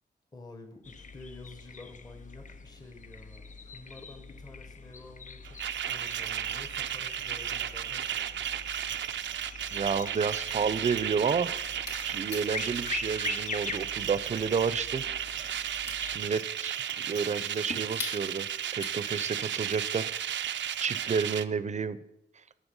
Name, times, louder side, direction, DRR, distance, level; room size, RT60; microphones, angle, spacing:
voice 1, 0.3-8.5, left 2 dB, 20° left, 5 dB, 1.3 m, -49 dB
sound 1, 0.8-16.2, left 4 dB, 45° left, 0.7 m, -43 dB
sound 2, 5.4-21.5, right 10 dB, 90° right, 0.6 m, -34 dB
voice 2, 9.7-11.5 12.0-15.0 16.1-16.8 17.1-18.5 18.7-22.0, right 5 dB, 40° right, 15 dB, 0.7 m, -30 dB
sound 3, 11.5-19.3, left 3 dB, 65° left, 2.7 m, -45 dB
19.0 x 6.7 x 5.5 m, 0.88 s
wide cardioid pair, 125°, 19 cm